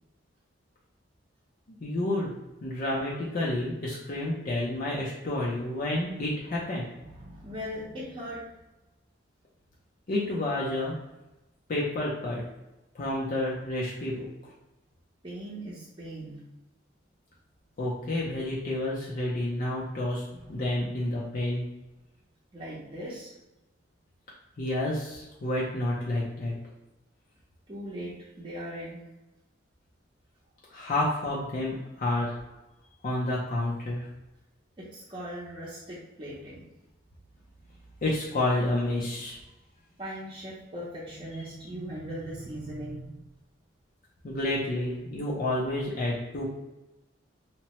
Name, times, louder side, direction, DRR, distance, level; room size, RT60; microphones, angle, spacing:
voice 1, 1.8-2.3 2.6-6.9 10.1-11.0 11.7-12.4 12.9-14.3 17.8-21.6 24.6-26.6 30.7-32.4 33.0-34.1 38.0-39.4 44.2-46.5, left 1 dB, 45° left, -5 dB, 0.5 m, -29 dB
voice 2, 7.0-8.4 15.2-16.4 20.3-20.6 22.5-23.3 27.7-29.0 34.8-36.6 40.0-43.3, equal, 25° right, -8 dB, 0.7 m, -39 dB
2.8 x 2.1 x 2.9 m, 1.0 s
head